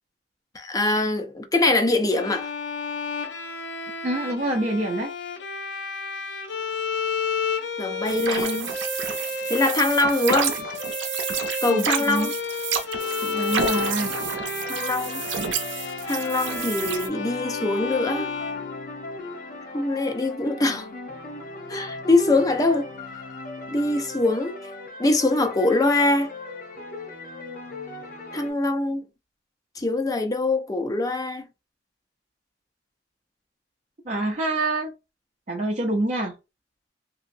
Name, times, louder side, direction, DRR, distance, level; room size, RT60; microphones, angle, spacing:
voice 1, 0.5-2.5 7.8-8.7 9.5-10.6 11.6-12.3 14.7-15.2 16.1-18.3 19.7-20.9 21.7-22.9 23.7-24.6 25.0-26.3 28.3-29.0 29.8-31.5, left 2 dB, 20° left, 0.5 m, -23 dB
Bowed string instrument, 2.1-19.3, left 5 dB, 85° left, 0.5 m, -31 dB
voice 2, 4.0-5.1 11.7-12.3 13.2-14.1 34.1-34.9 35.5-36.3, right 2 dB, 40° right, 0.6 m, -26 dB
sound 1, 8.0-17.1, right 7 dB, 85° right, 0.6 m, -30 dB
sound 2, 13.0-28.5, left 2 dB, 50° left, 0.8 m, -37 dB
3.0 x 2.7 x 2.6 m
head